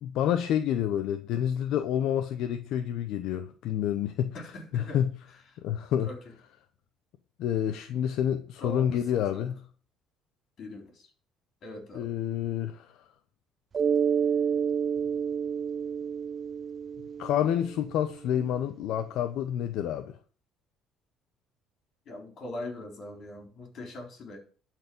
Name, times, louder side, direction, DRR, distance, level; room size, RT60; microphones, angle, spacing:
voice 1, 0.0-5.1 5.6-6.1 7.4-9.6 11.9-12.9 17.2-20.2, left 10 dB, 70° left, 0.8 m, -28 dB
voice 2, 4.3-5.0 6.0-6.1 8.6-9.5 10.6-10.9 11.6-12.1 22.1-24.4, left 2 dB, 50° left, 4.2 m, -41 dB
Mallet percussion, 13.7-18.2, right 7 dB, 35° right, 0.5 m, -29 dB
12.0 x 4.7 x 7.8 m
cardioid pair, 125°, 0 cm